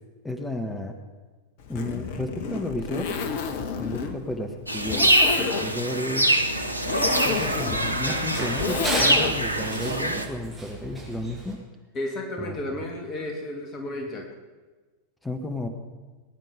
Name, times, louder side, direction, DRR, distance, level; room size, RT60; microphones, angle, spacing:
voice 1, 0.2-1.0 1.7-3.2 3.8-6.3 7.2-11.6 12.4-12.6 15.2-15.7, left 1 dB, 10° left, 6 dB, 1.5 m, -33 dB
Zipper (clothing), 1.6-9.6, left 5 dB, 50° left, 1.3 m, -30 dB
sound 1, 4.7-10.2, right 1 dB, 85° right, 0.9 m, -24 dB
Run, 6.4-11.5, right 2 dB, 10° right, 5.8 m, -35 dB
voice 2, 11.9-14.3, left 1 dB, 30° left, 2 dB, 2.6 m, -33 dB
21.0 x 10.0 x 5.1 m, 1.3 s
figure-of-eight pair, 90°, 0 cm